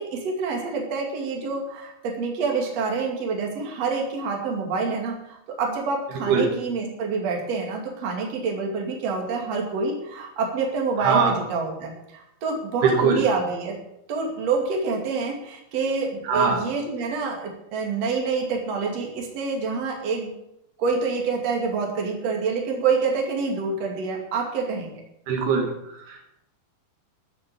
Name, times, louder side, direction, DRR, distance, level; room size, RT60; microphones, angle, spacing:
voice 1, 0.0-13.8 14.1-20.3 20.8-25.0, right 4 dB, 45° right, 1 dB, 3.1 m, -27 dB
voice 2, 11.0-11.3 12.8-13.2 16.2-16.6 25.3-26.3, right 5 dB, 75° right, 2 dB, 3.5 m, -22 dB
14.0 x 6.6 x 8.6 m, 0.83 s
omnidirectional pair, 4.8 m